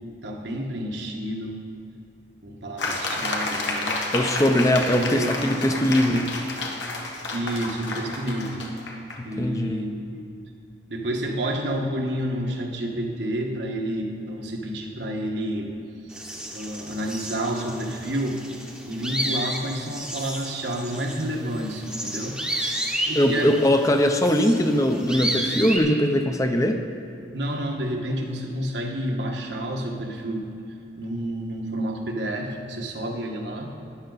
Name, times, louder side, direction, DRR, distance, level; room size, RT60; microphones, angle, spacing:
voice 1, 0.2-1.6 2.4-4.1 4.7-5.5 7.3-8.7 9.2-10.2 10.9-15.7 16.2-18.5 18.9-22.4 22.8-23.6 27.3-30.5 30.9-33.8, right 1 dB, 75° right, 1 dB, 1.3 m, -30 dB
sound 1, 2.8-9.2, left 2 dB, 80° left, 1.4 m, -30 dB
voice 2, 4.1-6.3 9.2-9.8 23.2-26.8, equal, 15° left, 5 dB, 0.6 m, -21 dB
sound 2, 16.1-25.8, right 1 dB, 5° right, 0.9 m, -32 dB
13.0 x 10.5 x 4.0 m, 2.6 s
head